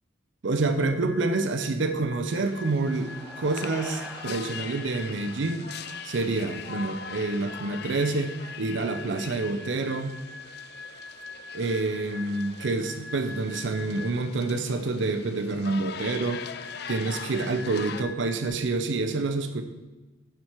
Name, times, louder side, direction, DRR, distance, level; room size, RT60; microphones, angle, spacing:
voice 1, 0.4-5.7 6.0-10.2 11.5-16.4 16.9-19.6, right 3 dB, 75° right, 7 dB, 0.5 m, -28 dB
sound 1, 0.7-14.4 16.3-18.5, left 2 dB, 85° left, 1.4 m, -44 dB
sound 2, 2.2-18.0, left 8 dB, 55° left, 0.4 m, -42 dB
sound 3, 2.6-7.3, right 1 dB, 5° right, 0.6 m, -47 dB
7.3 x 6.1 x 4.5 m, 1.2 s
head